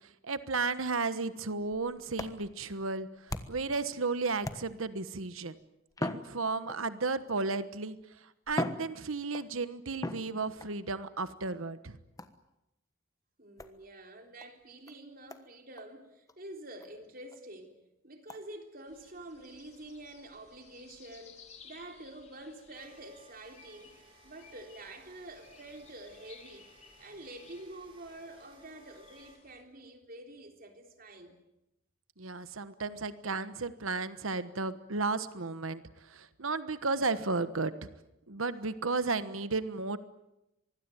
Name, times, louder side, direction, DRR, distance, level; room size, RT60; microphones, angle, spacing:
voice 1, 0.2-5.6 6.0-8.0 8.5-12.0 32.2-35.8 36.1-37.9 38.3-40.0, right 3 dB, 90° right, 1.3 m, -33 dB
sound 1, 1.6-3.8 4.4-5.0 5.9-7.0 7.9-8.0 8.5-9.5 10.0-10.7 12.2-12.5 13.6-13.8 14.4-14.5 14.9-15.0 15.3-15.5 15.8-15.9 16.3-16.4 16.8-16.9 17.3-17.4 18.3-18.4, left 1 dB, 15° left, 1.3 m, -39 dB
voice 2, 13.4-17.8 18.0-23.9 24.2-26.7 27.0-31.4, right 1 dB, 45° right, 3.7 m, -48 dB
sound 2, 18.9-29.6, left 5 dB, 35° left, 4.2 m, -58 dB
sound 3, 22.7-29.4, right 2 dB, 25° right, 5.0 m, -61 dB
25.0 x 20.5 x 9.2 m
head